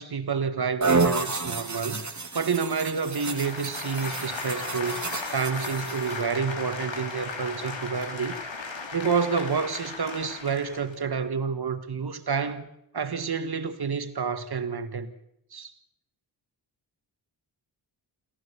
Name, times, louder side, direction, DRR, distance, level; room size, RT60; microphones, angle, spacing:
voice 1, 0.0-2.1 2.3-5.0 5.3-8.4 8.9-12.7 12.9-15.1 15.5-15.7, right 5 dB, 55° right, 1.8 m, -29 dB
sound 1, 0.8-6.2, right 3 dB, 40° right, 2.4 m, -30 dB
sound 2, 2.9-11.0, left 4 dB, 80° left, 3.3 m, -37 dB
28.0 x 14.0 x 7.1 m
wide cardioid pair, 85°, 45 cm